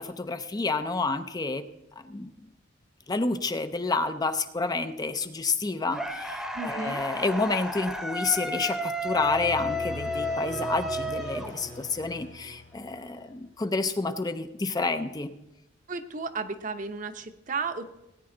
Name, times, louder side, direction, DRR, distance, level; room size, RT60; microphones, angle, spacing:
voice 1, 0.0-1.6 2.1-2.3 3.1-15.3, left 3 dB, 20° left, 10 dB, 0.5 m, -29 dB
sound 1, 5.9-12.0, equal, ahead, 0.9 m, -32 dB
voice 2, 6.5-7.0 15.9-17.9, right 4 dB, 40° right, 9 dB, 0.8 m, -33 dB
sound 2, 9.0-13.3, left 1 dB, 65° left, 2.2 m, -41 dB
18.0 x 9.5 x 3.8 m, 0.92 s
head